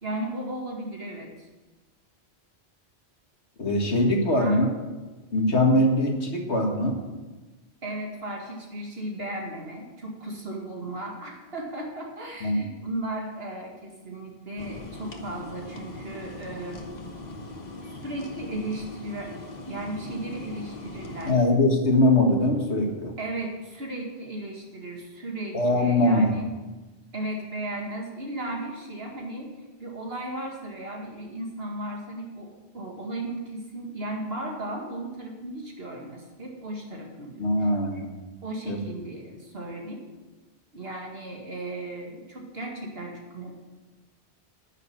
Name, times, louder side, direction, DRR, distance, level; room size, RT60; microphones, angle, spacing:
voice 1, 0.0-1.5 4.2-4.6 7.8-16.8 17.9-19.3 19.7-21.4 23.2-26.5 27.1-29.5 29.8-37.7 38.4-40.1 40.7-43.5, right 1 dB, 65° right, 0 dB, 2.4 m, -35 dB
voice 2, 3.6-4.7 5.3-7.0 12.4-12.6 21.3-23.1 25.5-26.3 37.4-38.1 38.7-38.8, left 1 dB, 85° left, 2 dB, 2.1 m, -22 dB
sound 1, 14.6-21.3, left 2 dB, 40° left, 1.2 m, -40 dB
10.0 x 6.7 x 8.7 m, 1.2 s
omnidirectional pair, 1.1 m